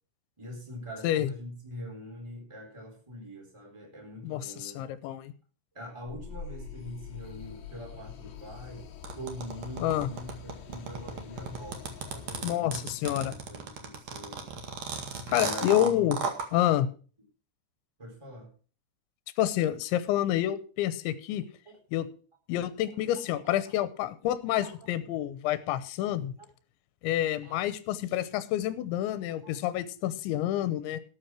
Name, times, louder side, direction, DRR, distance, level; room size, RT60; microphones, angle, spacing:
voice 1, 0.4-4.8 5.7-8.9 9.1-14.6 15.3-16.1 18.0-18.5 23.3-23.7 24.6-24.7 27.4-27.6 29.4-29.5, equal, 5° right, 1 dB, 3.4 m, -43 dB
voice 2, 4.2-5.3 9.8-10.1 12.4-13.3 15.3-16.2 16.5-16.9 19.4-21.4 21.9-22.1 22.5-26.3 27.0-31.0, left 12 dB, 85° left, 14 dB, 3.2 m, -28 dB
sound 1, 6.1-12.4, left 6 dB, 60° left, 2.6 m, -45 dB
sound 2, 9.0-16.5, right 6 dB, 50° right, 2.4 m, -34 dB
13.0 x 8.7 x 5.9 m, 0.39 s
omnidirectional pair, 5.3 m